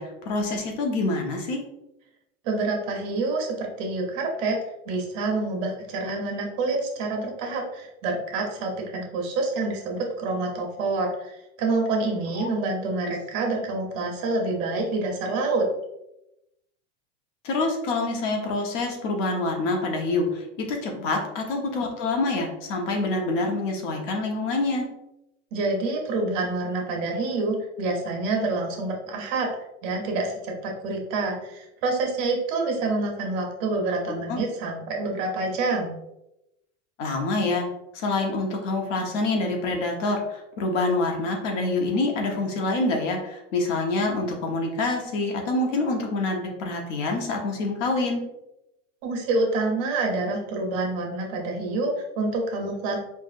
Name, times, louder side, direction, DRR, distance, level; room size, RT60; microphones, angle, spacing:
voice 1, 0.0-1.6 12.3-12.5 17.4-24.9 34.1-34.4 37.0-37.7 37.9-48.2, left 2 dB, 70° left, 1 dB, 1.1 m, -26 dB
voice 2, 2.4-4.6 4.9-15.7 20.9-21.1 25.5-29.5 29.8-35.9 49.0-53.0, right 3 dB, 45° right, 0 dB, 0.9 m, -27 dB
4.6 x 2.5 x 2.5 m, 0.88 s
supercardioid pair, 155°, 38 cm